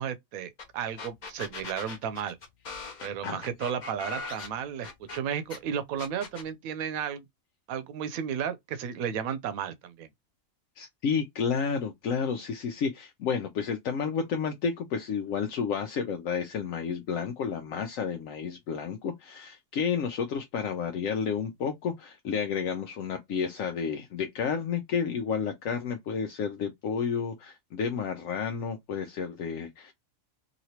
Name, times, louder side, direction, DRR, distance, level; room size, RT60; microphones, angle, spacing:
voice 1, 0.0-2.4 3.0-7.2 7.7-10.1, right 8 dB, 90° right, 1.0 m, -33 dB
sound 1, 0.6-0.7 1.0-5.6 6.0-6.5, left 4 dB, 40° left, 0.7 m, -40 dB
voice 2, 3.0-3.4 10.8-29.9, left 6 dB, 75° left, 1.0 m, -31 dB
3.0 x 2.8 x 2.8 m
omnidirectional pair, 1.4 m